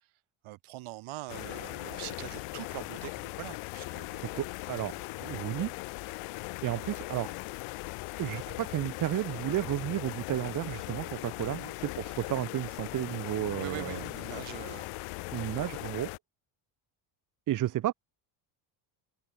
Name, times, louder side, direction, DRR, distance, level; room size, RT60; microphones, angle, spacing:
voice 1, 0.4-4.3 11.5-11.7 13.5-14.9, right 18 dB, 70° right, 1.9 m, -43 dB
sound 1, 1.3-16.2, left 24 dB, 85° left, 1.0 m, -39 dB
voice 2, 4.2-5.7 6.6-7.4 8.2-14.1 15.3-16.1 17.5-17.9, right 13 dB, 40° right, 0.6 m, -33 dB
cardioid pair, 120°, 50 cm